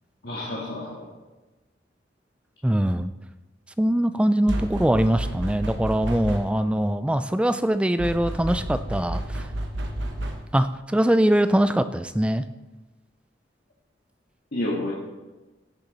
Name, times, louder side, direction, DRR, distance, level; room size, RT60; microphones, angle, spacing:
voice 1, 0.2-1.1 14.5-14.9, left 1 dB, 60° left, -5 dB, 1.8 m, -29 dB
voice 2, 2.6-3.1 3.8-9.5 10.5-12.5, right 1 dB, 5° right, 12 dB, 0.3 m, -22 dB
sound 1, 4.5-6.7 8.0-10.7, right 1 dB, 80° right, 1.1 m, -31 dB
16.5 x 6.8 x 4.1 m, 1.2 s
head